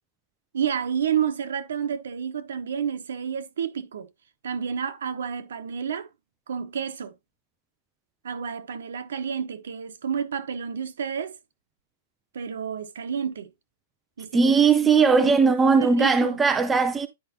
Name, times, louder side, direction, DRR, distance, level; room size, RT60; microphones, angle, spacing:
voice 1, 0.5-4.1 4.4-6.1 6.5-7.1 8.2-11.4 12.3-13.5 14.2-14.5 14.8-15.3 15.8-16.4, right 7 dB, 75° right, 1.3 m, -30 dB
voice 2, 14.3-17.1, right 5 dB, 5° right, 0.4 m, -19 dB
10.5 x 4.9 x 2.9 m
hypercardioid pair, 175°, 0 cm